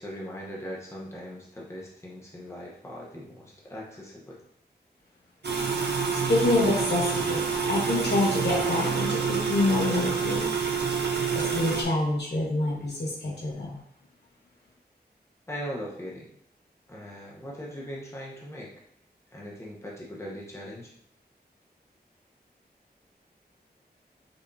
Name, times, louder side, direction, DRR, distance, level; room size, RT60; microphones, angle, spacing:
voice 1, 0.0-4.4 15.5-16.3 16.9-18.7 19.3-20.9, equal, 15° left, -4 dB, 1.0 m, -39 dB
sound 1, 5.4-11.8, right 5 dB, 85° right, 0.8 m, -27 dB
voice 2, 6.3-10.4 11.3-13.8, left 2 dB, 90° left, -3 dB, 1.5 m, -27 dB
5.4 x 3.3 x 2.7 m, 0.69 s
wide cardioid pair, 80°, 17 cm